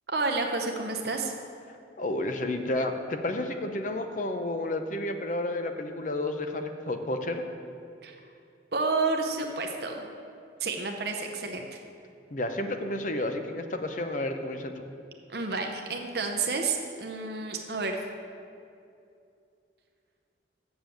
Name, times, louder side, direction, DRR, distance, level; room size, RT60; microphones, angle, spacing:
voice 1, 0.1-1.3 8.0-8.2 8.7-10.1 10.6-11.7 15.3-18.0, right 3 dB, 55° right, 3 dB, 0.7 m, -30 dB
voice 2, 2.0-7.4 12.3-14.9, left 1 dB, 45° left, 6 dB, 0.7 m, -31 dB
7.2 x 7.0 x 7.6 m, 2.5 s
head